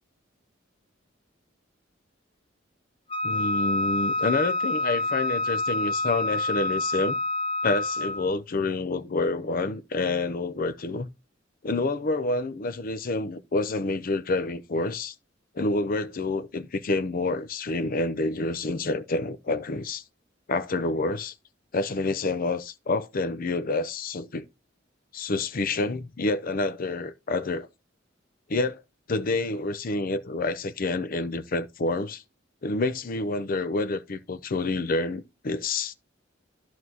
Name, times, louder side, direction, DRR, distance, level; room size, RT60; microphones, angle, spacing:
Wind instrument woodwind instrument, 3.1-8.3, left 2 dB, 30° left, 1.1 m, -27 dB
voice 1, 3.2-7.2 7.6-11.1 11.6-15.1 15.5-20.0 20.5-21.3 21.7-24.4 25.1-27.7 28.5-28.8 29.1-32.2 32.6-35.9, left 3 dB, 50° left, 0.6 m, -28 dB
11.0 x 6.2 x 2.7 m
head